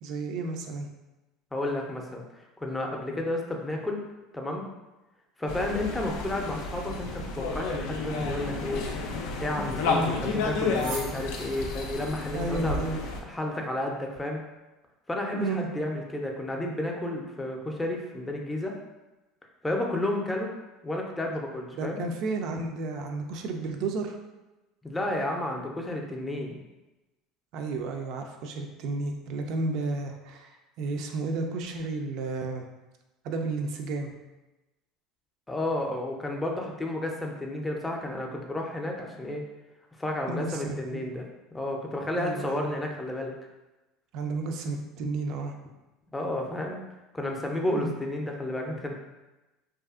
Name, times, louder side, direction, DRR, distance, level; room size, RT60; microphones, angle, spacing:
voice 1, 0.0-0.9 9.8-10.1 12.3-13.0 15.3-15.7 21.8-24.2 27.5-32.6 33.2-34.1 40.3-41.0 42.2-42.7 44.1-45.5 47.7-47.9, right 3 dB, 65° right, 4 dB, 0.3 m, -32 dB
voice 2, 1.5-4.0 4.3-4.6 5.4-8.9 9.4-12.8 13.2-14.4 15.1-18.8 19.6-20.5 20.8-22.0 24.8-26.5 35.5-39.4 40.0-41.3 41.5-43.3 46.1-46.8 47.1-48.9, left 1 dB, 10° left, 1 dB, 0.5 m, -31 dB
sound 1, 5.5-13.2, left 3 dB, 75° left, 0.4 m, -31 dB
sound 2, 9.5-14.2, right 2 dB, 90° right, 0.9 m, -48 dB
2.6 x 2.4 x 2.4 m, 1.1 s
hypercardioid pair, 90°, 0 cm